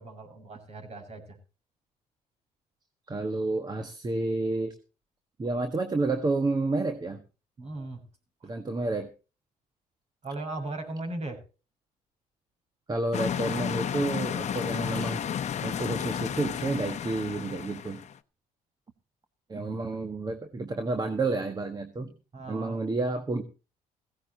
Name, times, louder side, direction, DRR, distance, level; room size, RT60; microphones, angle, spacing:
voice 1, 0.0-1.4 7.6-8.0 8.4-8.5 10.2-11.4 19.6-19.7 22.3-22.8, right 2 dB, 45° right, 4 dB, 6.2 m, -38 dB
voice 2, 3.1-4.7 5.4-7.2 8.4-9.1 12.9-15.2 15.6-18.0 19.5-22.1 22.5-23.4, right 2 dB, 25° right, 7 dB, 1.5 m, -30 dB
sound 1, 13.1-18.2, left 9 dB, 50° left, 0.9 m, -32 dB
16.5 x 16.5 x 2.9 m, 0.33 s
cardioid pair, 95°, 15 cm